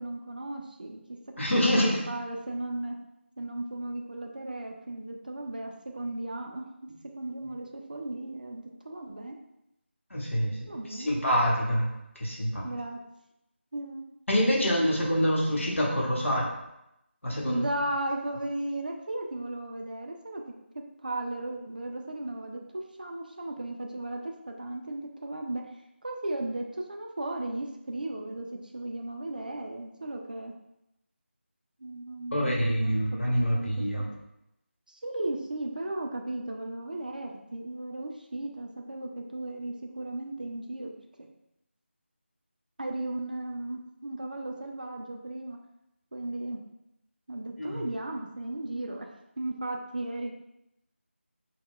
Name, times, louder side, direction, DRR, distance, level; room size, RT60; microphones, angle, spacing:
voice 1, 0.0-1.2 1.8-3.0 3.4-9.3 10.7-11.1 12.6-13.0 13.7-14.1 14.5-14.7 15.2-15.3 17.4-25.7 26.0-30.5 31.8-33.8 34.9-40.9 41.2-41.3 42.8-45.6 46.1-46.6 47.3-49.1 49.4-50.3, right 1 dB, 45° right, 2 dB, 0.3 m, -36 dB
voice 2, 1.4-2.0 10.1-10.6 10.9-11.9 12.2-12.7 14.3-16.5 17.2-17.6 32.3-34.1 47.6-47.8, equal, 80° left, -3 dB, 1.0 m, -26 dB
2.2 x 2.1 x 3.6 m, 0.85 s
figure-of-eight pair, 175°, 7 cm